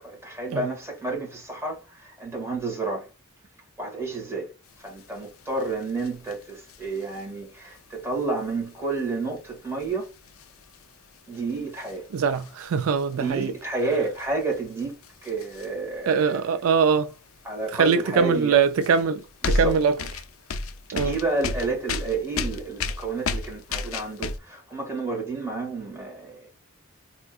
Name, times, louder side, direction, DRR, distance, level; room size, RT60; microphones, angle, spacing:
voice 1, 0.0-3.1 3.8-4.5 4.8-10.1 11.3-12.1 13.1-16.5 17.4-18.6 19.4-19.8 20.9-26.5, right 3 dB, 15° right, 1.8 m, -30 dB
sound 1, 4.7-16.4 16.9-17.9 18.3-24.4, left 3 dB, 70° left, 0.5 m, -34 dB
voice 2, 12.1-13.5 16.1-17.1 17.8-19.9 20.9-21.2, right 6 dB, 75° right, 0.3 m, -22 dB
3.5 x 2.8 x 2.3 m
head